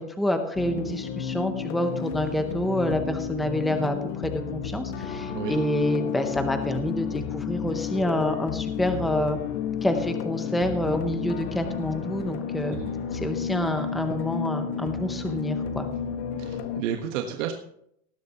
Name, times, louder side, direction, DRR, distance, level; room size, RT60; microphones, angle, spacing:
voice 1, 0.0-4.0 4.2-9.4 9.8-12.8 13.1-15.9, left 1 dB, ahead, 6 dB, 0.6 m, -27 dB
sound 1, 0.6-16.8, left 7 dB, 60° left, 1.5 m, -32 dB
voice 2, 16.4-17.5, right 9 dB, 65° right, 3 dB, 1.5 m, -31 dB
18.5 x 10.5 x 2.9 m, 0.70 s
supercardioid pair, 160°, 40 cm